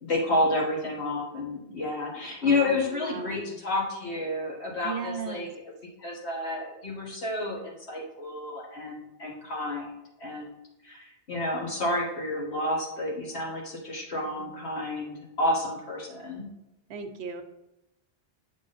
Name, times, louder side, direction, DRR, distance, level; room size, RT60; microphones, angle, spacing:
voice 1, 0.0-5.5 6.0-10.6 10.8-16.5, left 2 dB, 70° left, -2 dB, 1.9 m, -30 dB
voice 2, 2.4-3.5 4.8-5.4 14.4-14.5 16.9-17.4, right 6 dB, 75° right, 8 dB, 0.9 m, -37 dB
7.3 x 3.8 x 4.0 m, 0.92 s
omnidirectional pair, 1.1 m